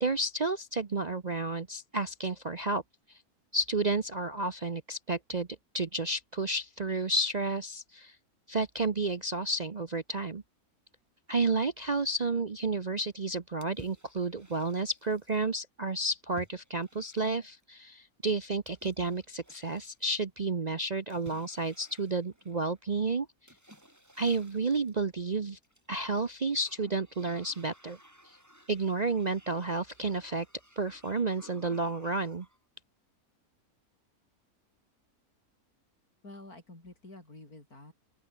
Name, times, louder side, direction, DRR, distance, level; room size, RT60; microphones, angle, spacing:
voice 1, 0.0-2.8 3.5-5.5 5.7-8.1 8.5-10.4 11.3-23.3 24.2-25.6 25.9-28.0 28.7-30.5 30.8-32.5, right 3 dB, 35° right, 0.8 m, -31 dB
sound 1, 13.6-15.4 16.4-17.6 18.7-20.0 21.1-22.8 23.5-25.0 25.6-26.3 26.6-32.6, equal, 10° right, 7.8 m, -56 dB
voice 2, 36.2-37.9, left 2 dB, 75° left, 7.9 m, -49 dB
open air
omnidirectional pair, 1.6 m